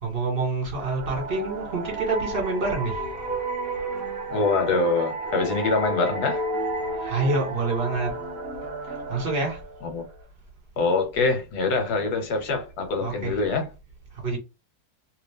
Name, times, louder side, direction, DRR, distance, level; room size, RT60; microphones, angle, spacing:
voice 1, 0.0-3.1 6.9-8.1 8.8-9.6 13.0-13.4 14.2-14.4, right 3 dB, 35° right, 1.4 m, -27 dB
sound 1, 0.8-10.2, right 2 dB, 60° right, 1.2 m, -32 dB
voice 2, 4.3-6.5 9.8-10.0 10.8-13.7, left 3 dB, 65° left, 1.4 m, -24 dB
2.9 x 2.4 x 3.4 m
omnidirectional pair, 1.9 m